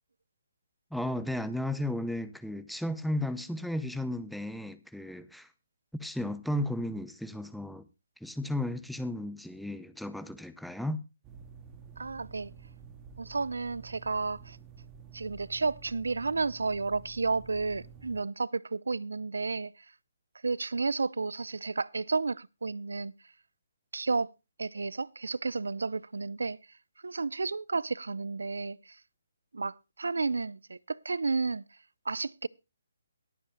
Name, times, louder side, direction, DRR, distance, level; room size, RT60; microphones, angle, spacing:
voice 1, 0.9-5.5 6.0-7.9 8.2-11.0, left 1 dB, ahead, 0.7 m, -34 dB
sound 1, 11.2-18.2, right 6 dB, 20° right, 1.8 m, -51 dB
voice 2, 12.0-12.5 13.2-14.6 15.1-19.9 20.4-23.1 23.9-24.3 24.6-26.6 27.0-29.0 29.5-31.6 32.1-32.5, right 4 dB, 85° right, 0.5 m, -32 dB
23.0 x 8.6 x 2.2 m
hypercardioid pair, 155°, 0 cm